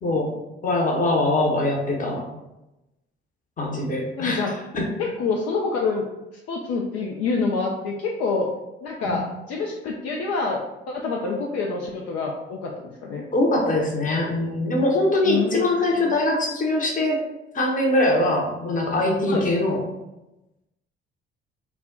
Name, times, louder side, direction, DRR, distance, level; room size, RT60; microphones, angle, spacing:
voice 1, 0.6-2.3 3.6-4.8 9.0-9.3 13.3-17.2 17.5-19.8, left 1 dB, 25° left, 0 dB, 0.8 m, -22 dB
voice 2, 4.2-4.5 5.0-6.1 6.5-8.5 8.8-10.6 10.9-13.3 15.2-16.1 19.3-19.5, left 4 dB, 55° left, -1 dB, 0.4 m, -27 dB
2.2 x 2.1 x 3.7 m, 0.97 s
figure-of-eight pair, 45°, 31 cm